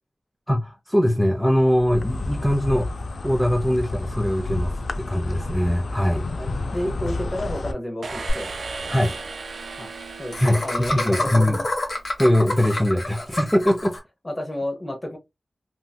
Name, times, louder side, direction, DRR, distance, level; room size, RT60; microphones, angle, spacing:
voice 1, 0.5-2.9 3.2-6.2 8.9-9.2 10.4-10.6 10.9-11.6 12.2-14.0, equal, 5° left, 0.5 m, -21 dB
Insect, 1.7-7.7, left 2 dB, 80° left, 0.4 m, -30 dB
voice 2, 6.4-8.5 9.8-9.9 10.2-11.6 14.2-15.2, left 1 dB, 25° left, 1.0 m, -31 dB
sound 1, 8.0-11.9, right 3 dB, 85° right, 0.5 m, -36 dB
Laughter, 8.3-8.4 8.6-8.7 8.9-9.1 10.3-14.0, left 2 dB, 55° left, 1.2 m, -27 dB
3.0 x 2.8 x 2.3 m
wide cardioid pair, 80°, 0 cm